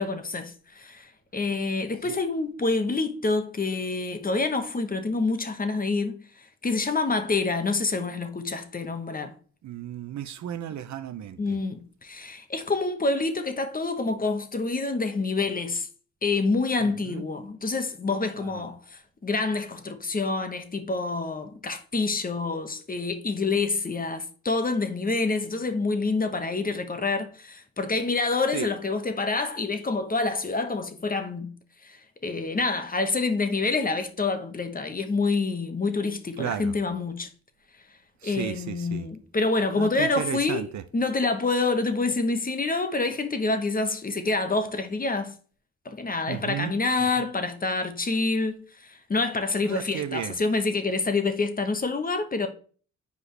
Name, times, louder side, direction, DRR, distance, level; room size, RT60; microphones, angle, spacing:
voice 1, 0.0-6.2 6.6-9.3 11.4-15.9 16.2-31.5 31.8-32.0 32.2-37.3 38.2-40.6 40.9-45.4 45.8-52.5, left 3 dB, 30° left, 1.0 m, -27 dB
voice 2, 9.6-11.4 17.0-17.2 18.4-18.6 28.5-28.7 36.4-36.7 38.2-39.1 39.8-40.8 46.3-46.7 47.2-47.3 49.6-50.3, right 10 dB, 65° right, 0.6 m, -34 dB
8.0 x 4.9 x 3.3 m
cardioid pair, 80°, 31 cm